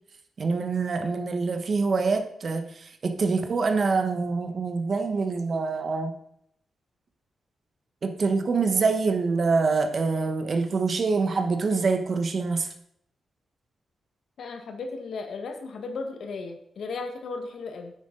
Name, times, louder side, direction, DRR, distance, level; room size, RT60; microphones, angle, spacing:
voice 1, 0.4-6.1 8.0-12.7, right 4 dB, 45° right, 7 dB, 1.0 m, -25 dB
voice 2, 14.4-17.9, left 4 dB, 70° left, 6 dB, 1.4 m, -35 dB
9.5 x 7.8 x 3.8 m, 0.70 s
wide cardioid pair, 135°, 0 cm